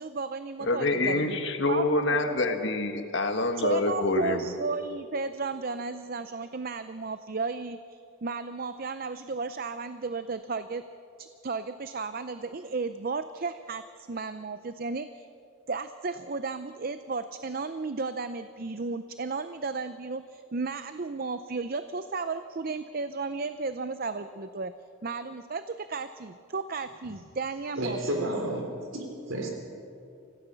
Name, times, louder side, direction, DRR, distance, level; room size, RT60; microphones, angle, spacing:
voice 1, 0.0-1.4 1.7-2.2 3.6-10.8 11.2-15.3 15.7-24.7 25.0-28.3, right 4 dB, 45° right, 11 dB, 0.5 m, -34 dB
voice 2, 0.7-4.5, left 2 dB, 60° left, 6 dB, 1.7 m, -26 dB
voice 3, 27.8-29.5, right 1 dB, 70° right, 2 dB, 3.7 m, -31 dB
26.0 x 16.5 x 7.0 m, 2.6 s
head